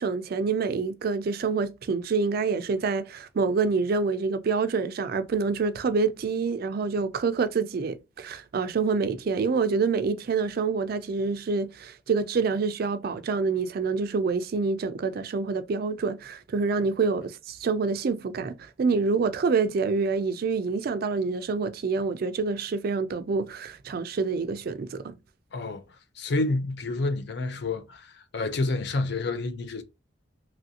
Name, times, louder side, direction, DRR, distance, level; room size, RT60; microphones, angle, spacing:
voice 1, 0.0-25.2, right 4 dB, 55° right, 0.4 m, -27 dB
voice 2, 25.5-25.8 26.2-29.8, left 2 dB, 65° left, 0.5 m, -29 dB
3.0 x 2.5 x 2.7 m
head